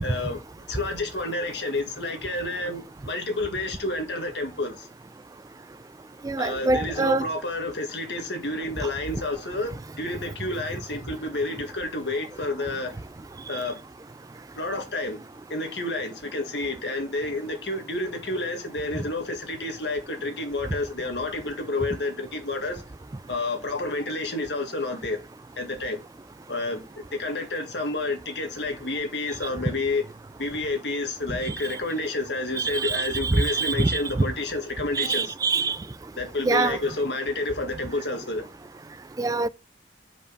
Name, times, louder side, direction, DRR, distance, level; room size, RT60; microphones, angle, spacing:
voice 1, 0.0-0.4 0.7-4.9 6.4-13.0 13.5-13.8 14.6-15.2 15.5-22.8 23.3-25.2 25.6-26.0 26.5-26.8 27.1-30.0 30.4-35.3 36.2-38.5, left 2 dB, 75° left, 1.9 m, -30 dB
voice 2, 6.2-7.3 31.5-31.6 32.6-34.3 34.9-35.8 36.4-36.8 39.2-39.5, right 3 dB, 20° right, 0.3 m, -24 dB
5.2 x 5.0 x 5.6 m
head